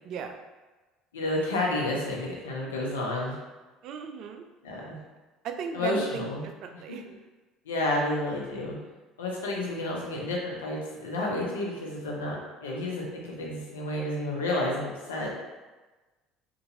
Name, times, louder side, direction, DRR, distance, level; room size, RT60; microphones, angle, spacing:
voice 1, 0.0-0.4 3.8-4.4 5.4-6.3 6.6-7.0, right 7 dB, 55° right, 5 dB, 0.3 m, -36 dB
voice 2, 1.1-3.4 4.6-5.0 5.7-6.5 6.7-7.1 7.7-8.8 9.2-15.3, left 1 dB, 80° left, -2 dB, 0.6 m, -30 dB
2.9 x 2.5 x 2.6 m, 1.2 s
hypercardioid pair, 65°, 0 cm